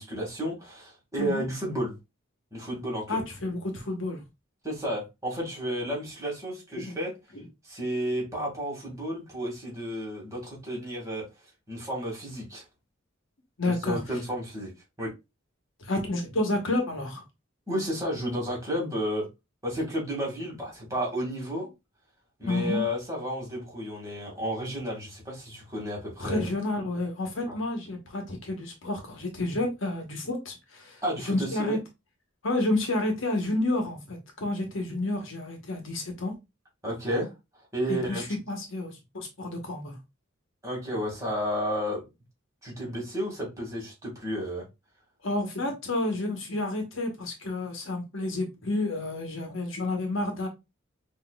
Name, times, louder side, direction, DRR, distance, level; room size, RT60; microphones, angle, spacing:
voice 1, 0.0-1.9 2.5-3.2 4.6-7.1 7.7-11.3 11.7-12.6 13.6-14.7 15.0-15.1 17.7-19.3 19.6-21.7 22.4-26.5 27.5-27.6 31.0-31.8 36.8-37.3 37.7-38.2 40.6-42.0 42.6-44.6, equal, 15° right, 2.0 m, -32 dB
voice 2, 3.1-4.2 6.8-6.9 13.6-14.0 15.8-17.2 22.4-22.8 26.2-31.8 32.4-36.3 37.9-40.0 45.2-50.5, left 2 dB, 65° left, 1.1 m, -30 dB
5.8 x 2.8 x 2.3 m
head